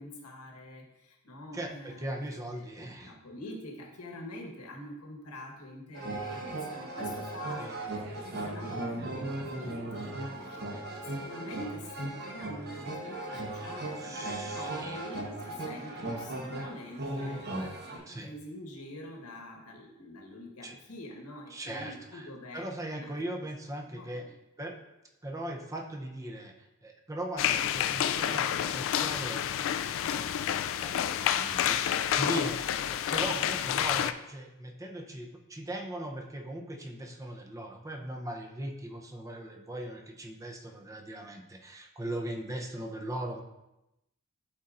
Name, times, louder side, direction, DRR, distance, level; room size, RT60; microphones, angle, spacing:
voice 1, 0.0-2.1 2.5-2.7 3.0-10.6 11.0-23.1 23.9-24.3, left 1 dB, 80° left, 1 dB, 1.3 m, -45 dB
voice 2, 1.5-3.1 7.6-7.8 10.7-10.9 14.0-15.1 18.1-18.3 20.6-20.8 21.5-24.3 24.6-24.8 25.2-26.6 26.8-29.4 29.9-43.4, right 1 dB, 15° right, 2 dB, 0.6 m, -39 dB
sound 1, 5.9-18.0, right 2 dB, 50° right, 1.0 m, -37 dB
sound 2, 27.4-34.1, left 10 dB, 60° left, 0.3 m, -29 dB
11.5 x 4.2 x 2.5 m, 0.91 s
head